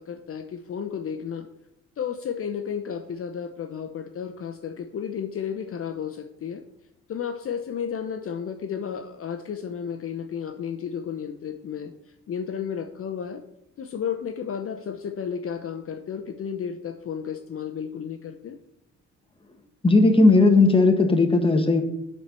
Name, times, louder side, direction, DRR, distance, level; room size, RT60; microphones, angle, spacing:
voice 1, 0.0-1.5 2.0-6.6 7.1-13.4 13.8-18.6, left 7 dB, 50° left, 7 dB, 0.8 m, -33 dB
voice 2, 19.8-21.8, left 3 dB, 15° left, 5 dB, 1.4 m, -17 dB
8.9 x 4.4 x 6.8 m, 0.84 s
cardioid pair, 90°, 30 cm